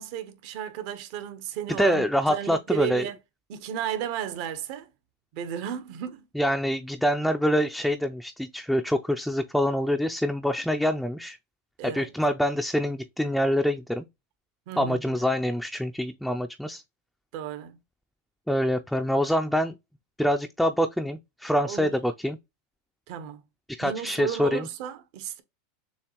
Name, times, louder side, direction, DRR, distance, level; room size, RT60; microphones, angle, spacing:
voice 1, 0.0-3.2 3.5-4.9 5.3-6.3 11.8-12.1 14.7-15.1 17.3-17.8 21.6-21.9 23.1-23.4 23.8-25.4, right 10 dB, 60° right, 1.0 m, -34 dB
voice 2, 1.8-3.0 6.4-11.4 11.8-14.1 14.8-16.8 18.5-19.8 20.2-22.4 23.7-24.7, equal, ahead, 0.4 m, -25 dB
6.9 x 2.4 x 3.0 m
hypercardioid pair, 110°, 0 cm